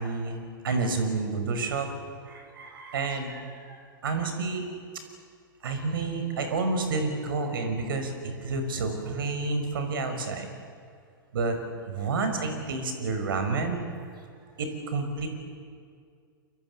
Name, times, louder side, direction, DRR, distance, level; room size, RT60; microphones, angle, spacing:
voice 1, 0.0-1.9 2.3-3.8 4.0-4.7 5.6-10.5 11.3-11.6 11.8-13.8 14.6-15.3, right 3 dB, 70° right, 6 dB, 6.0 m, -29 dB
29.0 x 24.0 x 8.4 m, 2.2 s
hypercardioid pair, 110°, 12 cm